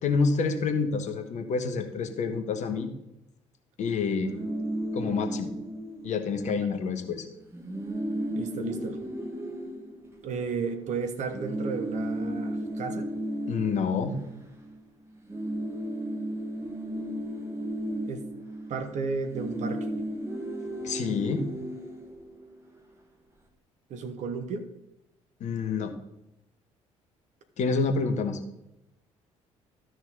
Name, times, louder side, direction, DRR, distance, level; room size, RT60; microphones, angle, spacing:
voice 1, 0.0-2.9 3.8-4.3 4.9-5.5 6.0-7.3 13.5-14.2 20.8-21.4 25.4-25.9 27.6-28.4, left 5 dB, 50° left, 7 dB, 1.2 m, -28 dB
sound 1, 4.1-6.7 7.0-7.1 7.4-10.8 11.3-14.9 15.1-22.7, right 1 dB, 15° right, 2.0 m, -35 dB
voice 2, 8.4-9.0 10.2-13.1 18.0-18.2 18.7-19.9 23.9-24.7, right 5 dB, 50° right, 7 dB, 1.2 m, -33 dB
13.0 x 6.3 x 4.0 m, 0.87 s
figure-of-eight pair, 50°, 16 cm